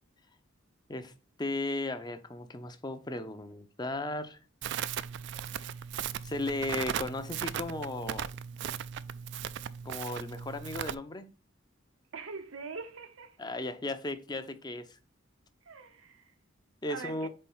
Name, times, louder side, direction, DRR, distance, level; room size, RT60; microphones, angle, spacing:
voice 1, 1.4-4.4 6.2-8.3 9.8-11.3 13.4-15.0 16.8-17.3, left 2 dB, 20° left, 0.5 m, -36 dB
Crackle, 4.6-10.9, right 9 dB, 60° right, 0.3 m, -37 dB
voice 2, 12.1-13.4 15.6-16.3 16.8-17.3, right 4 dB, 80° right, 0.8 m, -43 dB
4.4 x 4.2 x 5.4 m
head